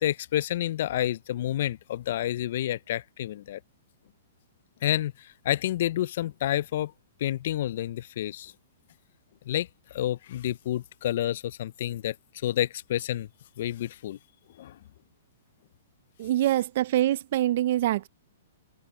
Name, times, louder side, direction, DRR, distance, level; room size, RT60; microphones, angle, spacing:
voice 1, 0.0-3.6 4.8-6.9 7.2-8.5 9.5-13.3 13.6-14.2 14.6-14.8, left 12 dB, 60° left, 0.5 m, -29 dB
voice 2, 16.2-18.1, right 13 dB, 55° right, 0.7 m, -24 dB
hypercardioid pair, 130°, 0 cm